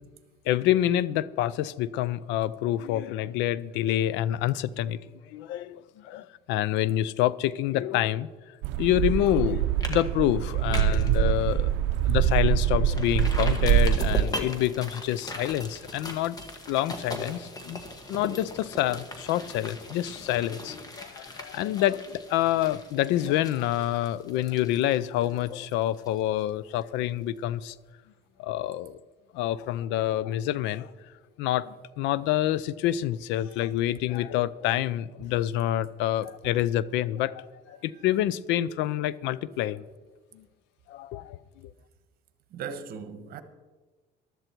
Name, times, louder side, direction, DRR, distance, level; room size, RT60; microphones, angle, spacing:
voice 1, 0.5-5.0 5.3-11.7 12.0-16.4 16.7-17.8 18.1-27.8 28.4-29.0 29.3-30.9 31.4-39.8 40.3-40.4 40.9-41.7, left 13 dB, 85° left, 0.5 m, -27 dB
sound 1, 8.6-14.2, right 11 dB, 80° right, 0.5 m, -24 dB
sound 2, 9.3-9.5 9.8-10.0 10.3-11.1 11.5-11.6 12.0-12.1 12.9-26.5 26.8-26.9, left 1 dB, 20° left, 1.6 m, -39 dB
voice 2, 42.5-43.4, right 6 dB, 55° right, 1.2 m, -37 dB
14.5 x 12.0 x 4.5 m
cardioid pair, 150°, 18 cm